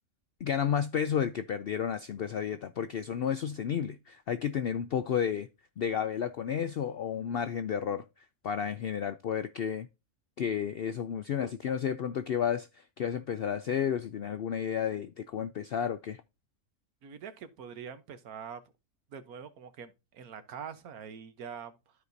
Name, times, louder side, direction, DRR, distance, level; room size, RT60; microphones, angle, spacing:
voice 1, 0.4-5.5 5.8-8.0 8.4-9.9 10.4-16.2, left 8 dB, 75° left, 0.5 m, -32 dB
voice 2, 17.0-18.6 19.1-21.9, right 7 dB, 85° right, 1.4 m, -44 dB
13.0 x 4.8 x 2.6 m
omnidirectional pair, 1.5 m